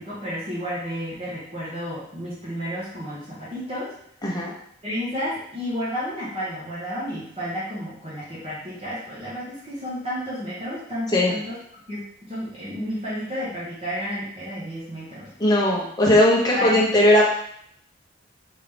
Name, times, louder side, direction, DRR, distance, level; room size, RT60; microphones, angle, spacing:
voice 1, 0.0-3.9 4.8-11.6 11.9-12.0 12.3-15.3 16.5-16.7, equal, 35° right, -10 dB, 1.4 m, -31 dB
voice 2, 4.2-4.5 11.1-11.3 15.4-17.2, left 1 dB, 20° left, -4 dB, 1.0 m, -18 dB
3.9 x 3.7 x 3.4 m, 0.69 s
head